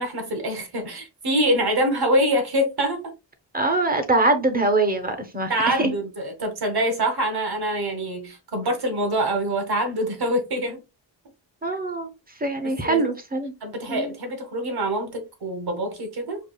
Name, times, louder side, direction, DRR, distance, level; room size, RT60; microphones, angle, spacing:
voice 1, 0.0-3.1 5.5-10.8 12.6-13.1 13.6-16.4, right 1 dB, 55° right, 1.4 m, -25 dB
voice 2, 3.5-5.9 11.6-12.1 12.4-13.5 13.9-14.1, right 2 dB, 20° right, 0.8 m, -23 dB
5.3 x 2.3 x 2.3 m
wide cardioid pair, 90°, 45 cm